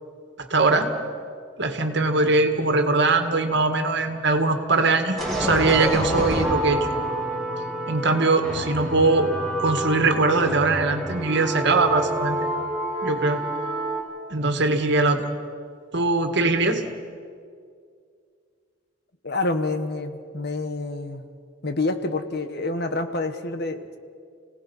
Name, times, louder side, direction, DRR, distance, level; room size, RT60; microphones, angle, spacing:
voice 1, 0.4-0.9 1.6-6.9 7.9-9.3 9.6-12.4 13.0-13.4 14.3-15.3 15.9-16.9, right 3 dB, 65° right, 6 dB, 2.0 m, -21 dB
sound 1, 5.2-14.0, right 1 dB, ahead, 5.0 m, -28 dB
voice 2, 19.2-21.2 21.6-24.0, left 2 dB, 60° left, 8 dB, 1.4 m, -27 dB
30.0 x 18.0 x 5.6 m, 2.2 s
head